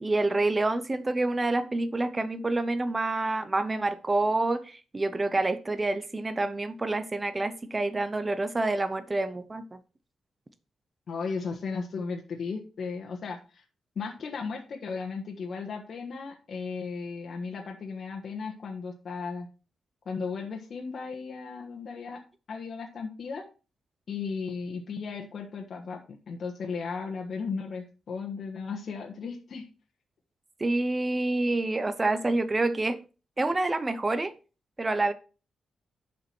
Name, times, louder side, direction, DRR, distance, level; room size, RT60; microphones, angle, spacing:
voice 1, 0.0-9.8 30.6-33.0 33.4-34.3 34.8-35.1, right 2 dB, 20° right, 0.7 m, -27 dB
voice 2, 11.1-13.6 13.9-19.5 20.0-22.2 22.5-23.5 24.1-29.6, left 5 dB, 55° left, 1.4 m, -35 dB
11.5 x 5.2 x 4.6 m
cardioid pair, 120°, 0 cm